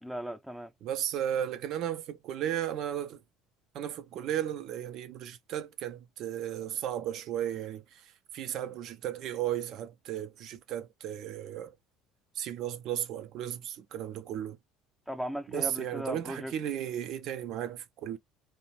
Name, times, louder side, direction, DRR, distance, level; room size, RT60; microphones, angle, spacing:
voice 1, 0.0-0.7 15.1-16.5, right 1 dB, ahead, 0.4 m, -37 dB
voice 2, 0.8-3.2 3.7-11.7 12.4-14.6 15.5-18.2, right 10 dB, 60° right, 0.5 m, -35 dB
2.5 x 2.1 x 2.9 m
hypercardioid pair, 70°, 0 cm